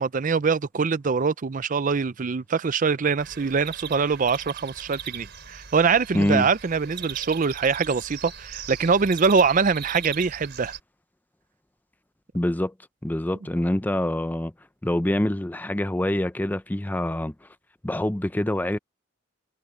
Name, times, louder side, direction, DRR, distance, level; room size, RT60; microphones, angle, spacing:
voice 1, 0.0-10.7, right 5 dB, 40° right, 0.5 m, -23 dB
sound 1, 3.2-10.8, right 8 dB, 60° right, 4.5 m, -39 dB
voice 2, 6.1-6.5 12.3-12.7 13.0-14.5 14.8-17.5 17.8-18.8, left 1 dB, 10° left, 0.5 m, -25 dB
head